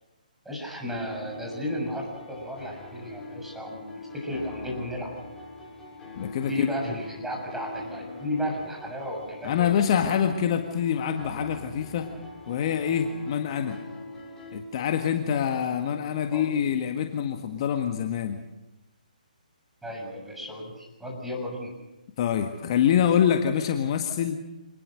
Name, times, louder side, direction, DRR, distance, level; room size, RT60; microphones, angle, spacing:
voice 1, 0.5-5.1 6.4-9.7 16.3-16.4 19.8-21.7, left 1 dB, 5° right, -2 dB, 7.2 m, -33 dB
sound 1, 0.9-14.6, left 3 dB, 10° left, 6.6 m, -43 dB
voice 2, 6.2-6.7 9.4-12.1 12.5-13.8 14.5-18.4 22.2-24.4, left 8 dB, 40° left, 5 dB, 1.7 m, -25 dB
26.5 x 20.0 x 6.6 m, 1.0 s
figure-of-eight pair, 140°, 5 cm